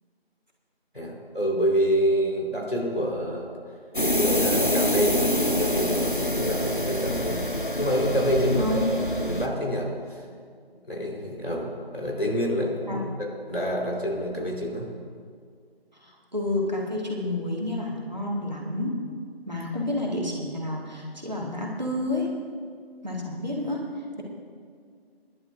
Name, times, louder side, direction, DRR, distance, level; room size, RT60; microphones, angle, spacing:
voice 1, 0.9-3.5 4.1-7.4 7.8-10.2 10.9-14.9, equal, 75° left, -2 dB, 4.2 m, -27 dB
sound 1, 3.9-9.5, left 1 dB, 55° left, 1.0 m, -26 dB
voice 2, 16.0-19.0 19.5-22.3 23.0-23.8, left 1 dB, 45° right, -3 dB, 1.9 m, -29 dB
27.0 x 11.0 x 2.6 m, 2.1 s
figure-of-eight pair, 180°, 31 cm